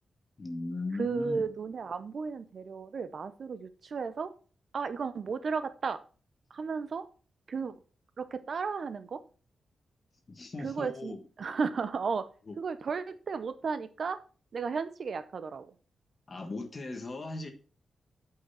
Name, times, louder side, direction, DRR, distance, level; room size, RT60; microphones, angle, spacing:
voice 1, 0.4-1.4 10.3-11.2 12.5-12.6 16.3-17.5, left 2 dB, 30° left, 6 dB, 1.5 m, -38 dB
voice 2, 1.0-4.3 4.7-6.0 6.5-7.0 7.5-7.8 8.2-9.2 10.6-12.3 12.6-14.2 14.5-15.7, right 5 dB, 45° right, 12 dB, 0.7 m, -34 dB
7.5 x 5.7 x 5.7 m, 0.37 s
wide cardioid pair, 175°, 0 cm